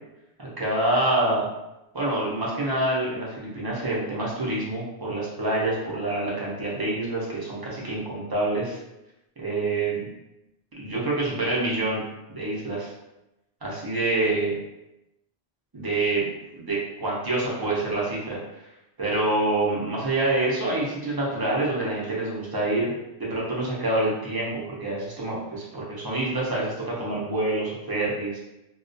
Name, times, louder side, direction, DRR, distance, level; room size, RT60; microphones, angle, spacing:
voice 1, 0.4-1.5 1.9-8.8 9.4-10.0 10.8-12.0 12.3-12.9 13.6-14.6 15.7-18.4 19.0-22.9 23.2-28.4, right 2 dB, 30° right, -5 dB, 0.4 m, -26 dB
2.3 x 2.1 x 2.5 m, 0.92 s
omnidirectional pair, 1.1 m